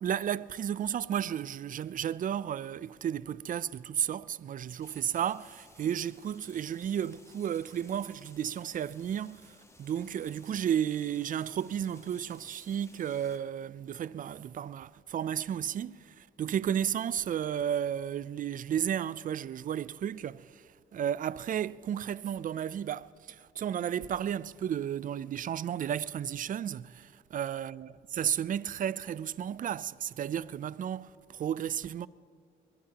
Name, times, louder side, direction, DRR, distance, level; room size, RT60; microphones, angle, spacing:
voice 1, 0.0-32.1, right 9 dB, 45° right, 0.4 m, -33 dB
sound 1, 4.8-13.4, left 2 dB, 15° left, 1.3 m, -59 dB
22.0 x 20.5 x 2.9 m
cardioid pair, 90°, 20 cm